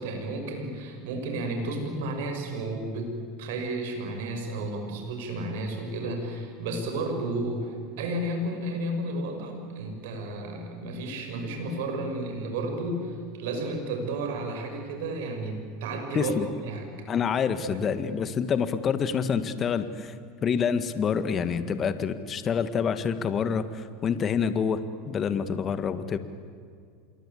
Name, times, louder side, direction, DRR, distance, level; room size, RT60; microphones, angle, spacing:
voice 1, 0.0-16.3 16.6-16.9 17.6-17.9, right 2 dB, 80° right, 4 dB, 6.4 m, -32 dB
voice 2, 16.1-16.5 17.1-20.1 20.4-24.8 25.1-26.2, left 6 dB, 35° left, 11 dB, 1.7 m, -27 dB
27.5 x 22.5 x 8.6 m, 2.3 s
supercardioid pair, 105°, 0 cm